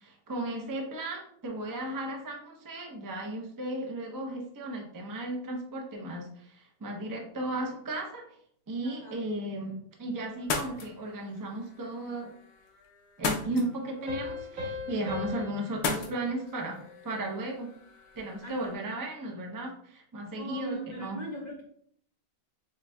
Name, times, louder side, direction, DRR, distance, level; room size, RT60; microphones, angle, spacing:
voice 1, 0.0-8.2 8.7-12.3 13.2-17.7 18.2-21.2, right 1 dB, 35° right, 1 dB, 0.3 m, -35 dB
voice 2, 8.8-9.2 14.8-15.3 18.4-18.8 20.3-21.6, right 1 dB, 55° left, -2 dB, 0.5 m, -40 dB
sound 1, 10.3-18.7, left 4 dB, 85° left, 1.2 m, -39 dB
Piano, 14.1-17.4, left 3 dB, 65° right, 2.1 m, -39 dB
6.7 x 2.7 x 2.2 m, 0.66 s
omnidirectional pair, 1.6 m